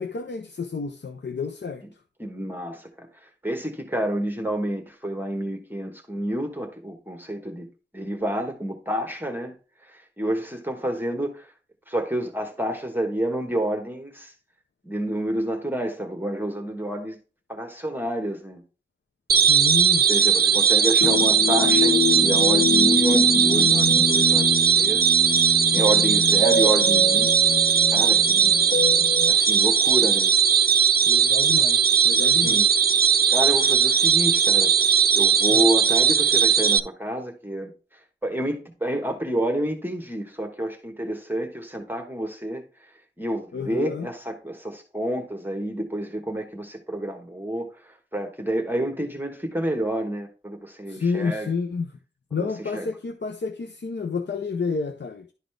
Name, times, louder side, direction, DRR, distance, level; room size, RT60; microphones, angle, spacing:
voice 1, 0.0-1.8 19.5-20.1 31.1-32.6 35.5-35.7 43.5-44.1 50.9-51.9 52.3-55.3, left 5 dB, 75° left, 0.6 m, -30 dB
voice 2, 2.2-3.1 3.4-7.7 7.9-9.5 9.8-11.5 11.9-14.3 14.8-17.2 17.5-18.6 20.1-25.1 25.7-27.3 27.9-28.5 29.2-30.3 32.2-32.7 33.3-42.6 43.2-51.5 52.3-52.9, right 1 dB, 10° right, 1.2 m, -29 dB
sound 1, 19.3-36.8, right 7 dB, 60° right, 0.5 m, -19 dB
sound 2, 21.0-29.3, left 4 dB, 45° left, 0.8 m, -26 dB
11.5 x 4.1 x 3.3 m
wide cardioid pair, 65°, 18 cm